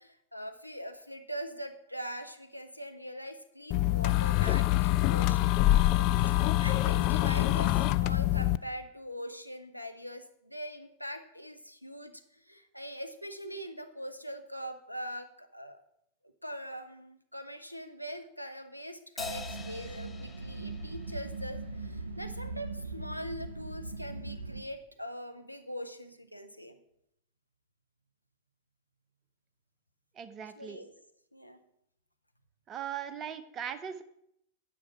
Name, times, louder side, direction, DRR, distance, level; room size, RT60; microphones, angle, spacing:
voice 1, 0.0-15.8 16.4-26.8 30.4-30.9 31.3-31.6, equal, 90° left, 7 dB, 0.8 m, -42 dB
sound 1, 3.7-8.6, left 16 dB, 40° left, 0.3 m, -25 dB
Crash cymbal, 19.2-21.9, left 4 dB, 15° left, 0.7 m, -44 dB
sound 2, 19.2-24.6, right 3 dB, 80° right, 0.5 m, -40 dB
voice 2, 30.2-30.8 32.7-34.0, right 8 dB, 30° right, 10 dB, 0.8 m, -39 dB
9.9 x 5.7 x 5.9 m, 0.74 s
figure-of-eight pair, 90°, 0 cm